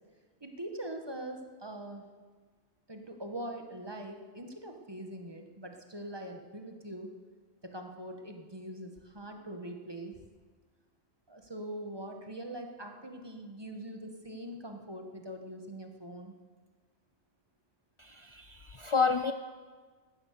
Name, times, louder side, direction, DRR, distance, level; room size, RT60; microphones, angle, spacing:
voice 1, 0.4-2.0 2.9-7.1 7.6-10.2 11.3-16.3, right 1 dB, 20° right, 3 dB, 1.5 m, -42 dB
voice 2, 18.0-19.3, left 5 dB, 50° left, 9 dB, 0.3 m, -30 dB
16.5 x 11.5 x 6.7 m, 1.5 s
omnidirectional pair, 1.2 m